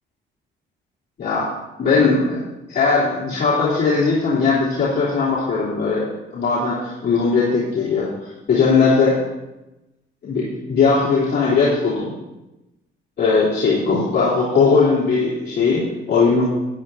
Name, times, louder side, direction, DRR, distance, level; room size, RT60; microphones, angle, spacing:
voice 1, 1.8-2.4 2.7-9.2 10.2-12.1 13.2-16.5, left 4 dB, 55° left, -8 dB, 3.2 m, -19 dB
12.5 x 10.0 x 2.8 m, 0.97 s
cardioid pair, 90°, 20 cm